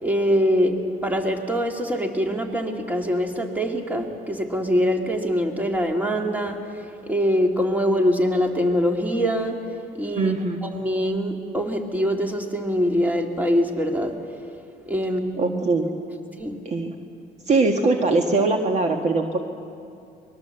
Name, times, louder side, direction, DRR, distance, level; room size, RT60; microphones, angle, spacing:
voice 1, 0.0-9.6 10.0-10.3 10.6-14.2 14.9-15.4 16.4-16.6, equal, 10° right, 3 dB, 2.4 m, -23 dB
voice 2, 10.2-10.6 15.4-15.9 16.6-16.9 17.5-19.4, right 3 dB, 40° right, 4 dB, 1.6 m, -21 dB
24.5 x 21.0 x 7.9 m, 2.5 s
cardioid pair, 110°, 17 cm